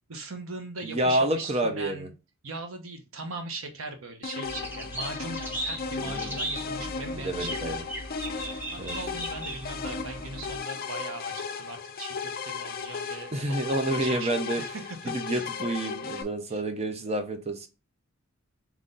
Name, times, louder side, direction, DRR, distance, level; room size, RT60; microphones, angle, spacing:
voice 1, 0.1-2.1 2.4-7.8 8.4-14.8 15.3-15.5 16.5-16.6, right 3 dB, 70° right, 5 dB, 1.0 m, -40 dB
voice 2, 0.8-2.1 6.0-6.4 6.8-7.8 8.8-8.9 13.3-14.6 15.1-17.7, right 1 dB, 30° right, 6 dB, 0.6 m, -29 dB
sound 1, 4.2-16.2, left 5 dB, 45° left, 0.5 m, -36 dB
sound 2, 4.4-10.6, right 1 dB, 10° right, 1.0 m, -37 dB
3.8 x 3.1 x 3.8 m, 0.29 s
head